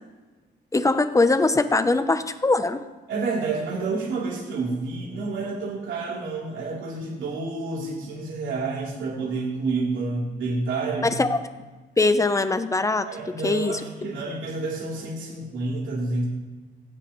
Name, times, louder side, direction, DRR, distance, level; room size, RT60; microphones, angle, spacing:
voice 1, 0.7-2.8 11.0-11.4 12.0-13.1 13.4-13.8, left 3 dB, 15° left, 11 dB, 0.8 m, -21 dB
voice 2, 3.1-11.1 13.1-16.2, right 3 dB, 70° right, -6 dB, 3.7 m, -29 dB
16.0 x 8.5 x 3.2 m, 1.3 s
cardioid pair, 90°, 20 cm